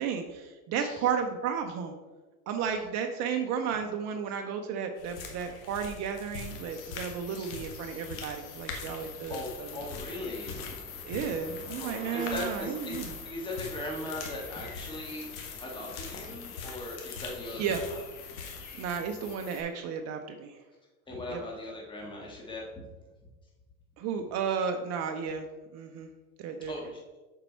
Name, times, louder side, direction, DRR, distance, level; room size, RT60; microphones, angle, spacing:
voice 1, 0.0-2.0 2.5-9.9 11.0-13.2 17.6-17.8 18.8-20.6 21.3-21.4 24.0-25.5 25.7-26.1 26.4-26.9, right 7 dB, 35° right, 5 dB, 0.7 m, -33 dB
sound 1, 5.0-19.0, left 5 dB, 65° left, 1.5 m, -44 dB
sound 2, 6.3-19.6, left 7 dB, 30° left, 1.1 m, -46 dB
voice 2, 8.9-10.7 11.4-11.5 11.8-13.0 13.3-18.0 21.1-22.8 26.7-27.0, left 1 dB, 10° left, -3 dB, 1.6 m, -39 dB
Bicycle, 9.6-15.6, right 1 dB, 15° right, 1.3 m, -50 dB
6.8 x 4.6 x 4.4 m, 1.2 s
hypercardioid pair, 90°, 44 cm